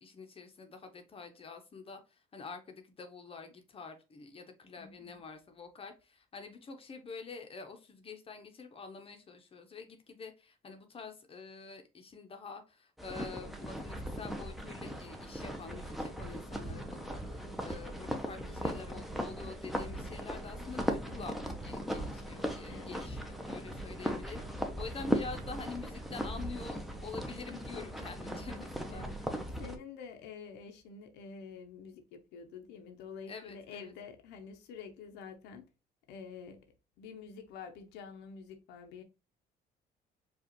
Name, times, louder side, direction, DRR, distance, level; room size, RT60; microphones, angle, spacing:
voice 1, 0.0-2.0 2.3-29.1 33.3-33.9, left 4 dB, 35° left, 0.8 m, -47 dB
voice 2, 4.8-5.2 18.4-18.6 22.7-23.0 24.9-25.2 28.9-29.2 29.6-35.7 36.1-36.7 37.0-39.0, left 6 dB, 90° left, 0.8 m, -48 dB
sound 1, 13.0-29.8, equal, ahead, 0.6 m, -38 dB
4.8 x 2.4 x 3.0 m
cardioid pair, 110°, 17 cm